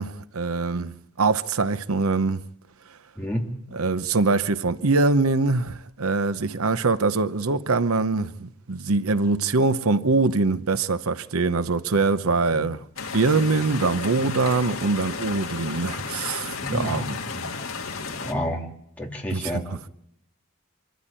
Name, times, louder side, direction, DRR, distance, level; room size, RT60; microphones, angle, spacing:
voice 1, 0.0-2.4 3.7-12.8 13.1-17.2 19.3-19.8, right 3 dB, 80° right, 0.9 m, -23 dB
sound 1, 13.0-18.3, left 4 dB, 70° left, 1.8 m, -33 dB
voice 2, 16.6-17.4 18.2-18.6 19.0-19.8, equal, 5° left, 3.2 m, -30 dB
25.5 x 14.5 x 8.9 m
head